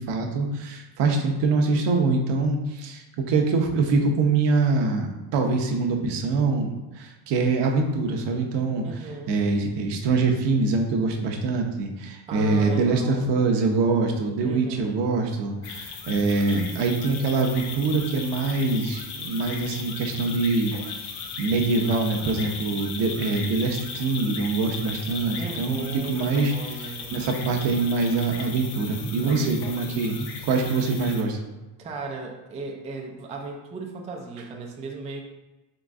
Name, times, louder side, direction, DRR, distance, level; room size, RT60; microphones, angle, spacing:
voice 1, 0.0-5.1 5.3-8.9 9.3-20.7 21.4-26.5 27.1-31.4, right 3 dB, 60° right, 3 dB, 0.8 m, -24 dB
voice 2, 8.8-9.4 12.3-13.4 14.4-15.1 25.4-27.2 29.2-30.1 31.8-35.2, right 3 dB, 15° right, 1 dB, 0.3 m, -36 dB
sound 1, 15.6-31.2, left 5 dB, 55° left, 0.8 m, -37 dB
3.9 x 3.0 x 3.6 m, 1.1 s
cardioid pair, 115°, 47 cm